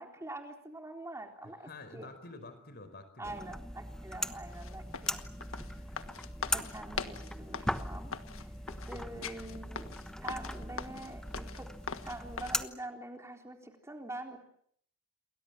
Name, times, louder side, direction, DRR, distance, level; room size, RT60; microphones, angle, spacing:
voice 1, 0.0-2.1 3.2-5.2 6.4-8.1 8.4-8.5 8.9-11.7 12.0-14.4, right 1 dB, 15° right, 3 dB, 3.9 m, -45 dB
voice 2, 1.4-3.3 4.1-4.3 5.7-6.0 8.9-9.6, left 2 dB, 45° left, 11 dB, 5.1 m, -50 dB
sound 1, 3.2-12.7, left 1 dB, 5° left, 1.1 m, -39 dB
sound 2, 4.5-12.6, left 6 dB, 65° left, 1.6 m, -42 dB
28.5 x 22.0 x 7.6 m, 0.66 s
head